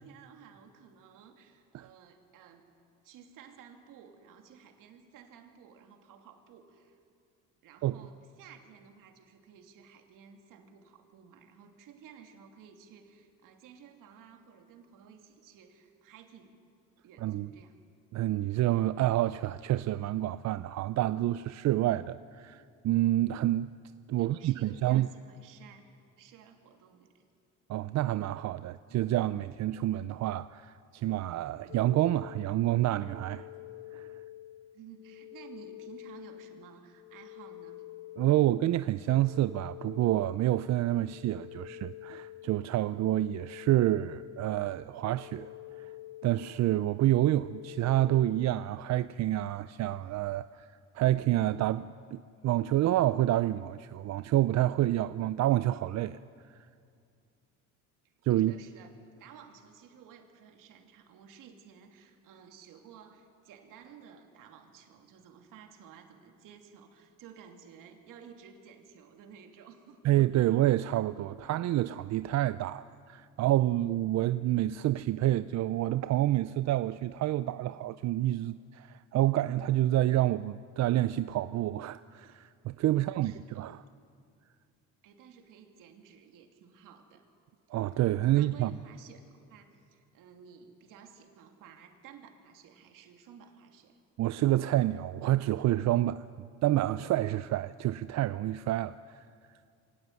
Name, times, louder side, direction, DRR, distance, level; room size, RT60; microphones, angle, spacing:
voice 1, 0.0-2.7 3.0-7.0 7.6-16.6 17.0-17.8 24.2-25.8 26.2-27.2 34.7-37.9 58.0-70.5 82.9-83.6 85.0-87.3 87.7-89.2 89.5-94.0, right 7 dB, 75° right, 2.8 m, -54 dB
voice 2, 18.1-23.7 24.1-25.1 27.7-33.5 33.9-34.1 38.2-45.5 45.8-45.9 46.2-50.7 50.9-56.2 58.2-58.5 70.0-83.8 87.7-88.7 94.2-96.2 96.6-99.3, right 14 dB, 55° right, 0.5 m, -28 dB
sound 1, 31.7-48.6, left 15 dB, 85° left, 0.8 m, -48 dB
23.0 x 17.5 x 9.3 m
cardioid pair, 100°, 32 cm